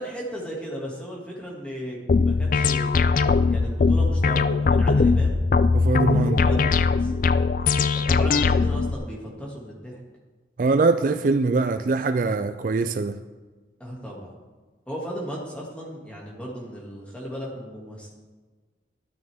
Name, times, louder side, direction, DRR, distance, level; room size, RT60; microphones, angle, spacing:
voice 1, 0.0-2.0 2.2-5.4 6.1-7.1 7.9-10.0 13.8-14.3 14.9-18.1, equal, 5° left, 2.3 m, -35 dB
sound 1, 2.1-8.9, left 4 dB, 45° left, 0.4 m, -20 dB
voice 2, 5.7-6.4 10.6-13.2, right 3 dB, 45° right, 0.4 m, -22 dB
12.5 x 12.0 x 3.6 m
head